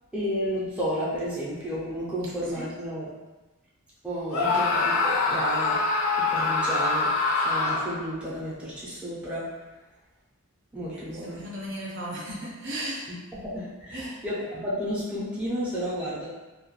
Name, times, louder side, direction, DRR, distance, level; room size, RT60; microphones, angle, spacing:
voice 1, 0.1-3.1 4.0-5.8 6.2-9.5 10.7-11.4 13.1-16.3, equal, 5° right, -9 dB, 0.5 m, -32 dB
Screaming, 4.3-8.1, left 3 dB, 85° left, 0.4 m, -24 dB
voice 2, 10.9-13.1 13.9-14.2, right 1 dB, 55° right, -4 dB, 0.6 m, -36 dB
2.3 x 2.1 x 3.0 m, 1.1 s
head